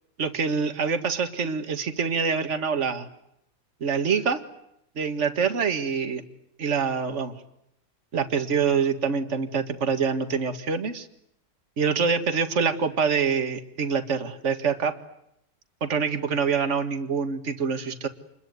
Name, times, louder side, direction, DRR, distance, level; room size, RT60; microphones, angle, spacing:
voice 1, 0.2-3.1 3.8-4.4 5.0-6.2 6.6-7.4 8.1-11.1 11.8-14.9 15.8-18.1, right 5 dB, 45° right, 8 dB, 2.1 m, -25 dB
28.5 x 21.5 x 9.5 m, 0.79 s
omnidirectional pair, 1.8 m